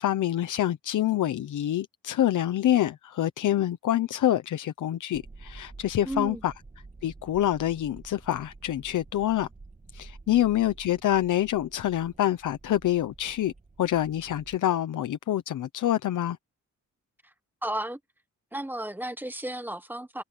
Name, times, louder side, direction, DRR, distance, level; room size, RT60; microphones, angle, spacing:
voice 1, 0.0-6.5 7.0-9.5 9.9-13.5 13.8-16.4, left 12 dB, 85° left, 1.0 m, -26 dB
sound 1, 5.1-14.6, right 3 dB, 25° right, 2.4 m, -50 dB
voice 2, 6.0-6.4 17.6-18.0 18.5-20.2, right 1 dB, 5° right, 1.2 m, -33 dB
cardioid pair, 115°, 30 cm